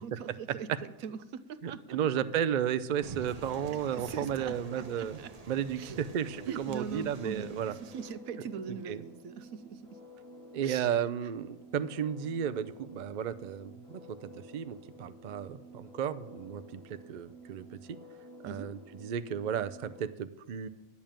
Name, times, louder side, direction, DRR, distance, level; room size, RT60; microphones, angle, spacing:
voice 1, 0.0-2.2 3.9-5.3 5.8-6.1 6.5-10.0 10.6-11.0 18.4-18.7, right 6 dB, 80° right, 13 dB, 1.1 m, -42 dB
voice 2, 1.6-5.2 5.5-7.7 8.9-9.0 10.5-18.0 18.4-20.7, right 9 dB, 60° right, 12 dB, 0.4 m, -33 dB
sound 1, 3.0-8.1, right 4 dB, 35° right, 0.8 m, -47 dB
sound 2, 5.7-20.0, equal, ahead, 4.6 m, -52 dB
10.5 x 7.2 x 8.8 m, 1.0 s
omnidirectional pair, 1.5 m